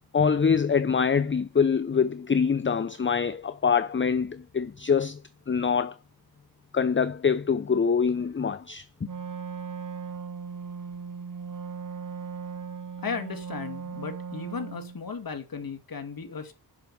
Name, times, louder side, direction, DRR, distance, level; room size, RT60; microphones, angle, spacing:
voice 1, 0.1-5.2 5.5-5.9 6.7-8.8, left 6 dB, 30° left, 0.7 m, -24 dB
Wind instrument woodwind instrument, 9.0-15.0, right 6 dB, 50° right, 1.5 m, -38 dB
voice 2, 13.0-16.6, left 5 dB, 60° left, 2.4 m, -35 dB
7.4 x 6.1 x 7.5 m
cardioid pair, 55°, 39 cm